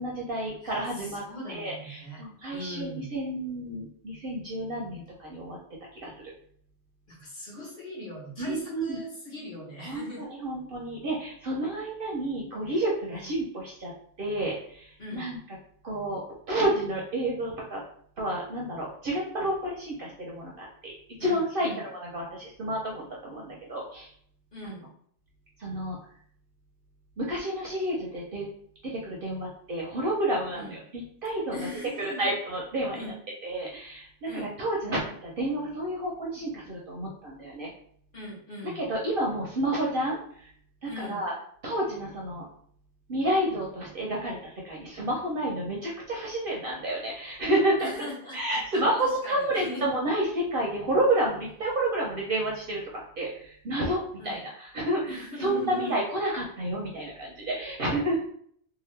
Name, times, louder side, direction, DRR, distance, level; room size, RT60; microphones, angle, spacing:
voice 1, 0.0-1.2 1.5-5.6 5.9-6.1 8.4-9.0 9.8-13.9 14.2-15.4 15.8-17.8 18.2-20.9 21.2-24.1 24.6-24.7 25.6-26.0 27.2-28.5 28.8-31.6 32.2-33.0 33.4-37.7 38.7-40.5 40.8-41.3 41.6-42.5 43.1-58.2, right 1 dB, 55° right, -2 dB, 0.7 m, -30 dB
voice 2, 0.6-2.2 2.5-3.1 7.1-10.2 13.1-13.3 15.0-15.3 21.2-21.8 24.5-24.9 30.5-30.8 31.5-32.3 32.9-33.1 34.3-34.5 38.1-38.9 40.8-41.3 47.8-49.9 54.2-54.4 55.1-56.0, left 1 dB, 45° left, -5 dB, 1.2 m, -40 dB
2.9 x 2.3 x 3.2 m, 0.62 s
omnidirectional pair, 1.3 m